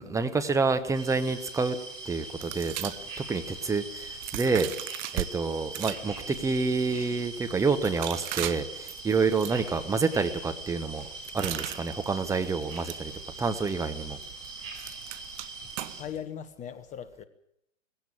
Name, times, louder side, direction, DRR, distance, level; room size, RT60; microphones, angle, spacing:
voice 1, 0.0-1.8 2.0-4.7 5.1-11.1 11.3-13.1 13.4-14.2, right 4 dB, 10° right, 8 dB, 1.0 m, -28 dB
sound 1, 0.9-16.0, right 2 dB, 70° right, 6.0 m, -42 dB
sound 2, 2.4-5.3 5.7-16.2, right 16 dB, 35° right, 0.8 m, -40 dB
voice 2, 16.0-17.2, left 9 dB, 20° left, 11 dB, 1.3 m, -39 dB
18.5 x 16.5 x 8.6 m, 0.76 s
hypercardioid pair, 125°, 39 cm